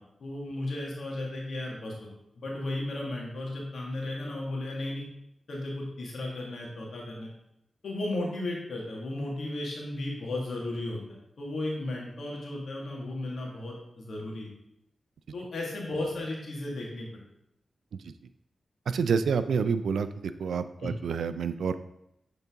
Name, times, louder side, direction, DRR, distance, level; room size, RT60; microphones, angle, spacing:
voice 1, 0.2-2.1 2.4-5.0 5.5-7.3 7.8-11.0 11.4-14.5 15.3-17.1 20.8-20.9, left 2 dB, 75° left, -2 dB, 1.8 m, -34 dB
voice 2, 18.9-20.1 20.4-21.8, right 6 dB, 90° right, 12 dB, 0.3 m, -28 dB
8.1 x 4.0 x 3.6 m, 0.81 s
cardioid pair, 45°, 0 cm